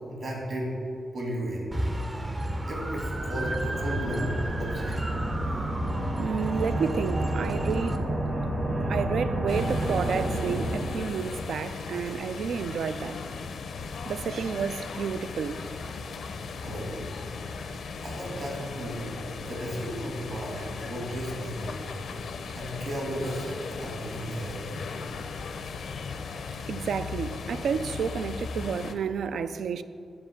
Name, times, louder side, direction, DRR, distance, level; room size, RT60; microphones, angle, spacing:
voice 1, 0.1-0.7 1.1-1.7 2.7-4.3 4.6-5.1 16.6-16.9 18.0-19.0 19.3-21.7 22.5-24.8, right 1 dB, 55° right, 2.2 m, -34 dB
sound 1, 1.7-8.0, right 1 dB, 20° right, 0.5 m, -33 dB
sound 2, 2.9-11.5, right 1 dB, 35° right, 1.1 m, -30 dB
voice 2, 6.2-8.1 8.9-13.2 14.1-15.6 26.7-29.8, right 6 dB, 75° right, 0.3 m, -31 dB
sound 3, 9.5-28.9, left 5 dB, 70° left, 0.6 m, -37 dB
7.8 x 5.0 x 7.0 m
wide cardioid pair, 120°, 0 cm